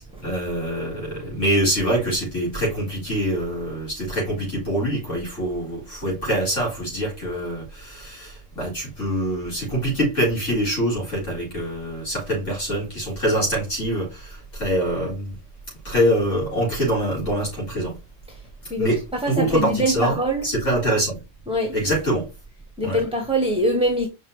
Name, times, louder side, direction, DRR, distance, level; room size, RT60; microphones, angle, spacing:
voice 1, 0.0-15.4 15.8-18.0 18.8-19.0 19.3-20.2 20.4-21.2 21.7-22.3 22.8-23.0, right 1 dB, 65° left, 4.3 m, -24 dB
voice 2, 19.2-20.5 21.5-21.7 22.8-24.1, right 1 dB, 5° right, 1.1 m, -23 dB
5.7 x 5.3 x 3.2 m
omnidirectional pair, 1.4 m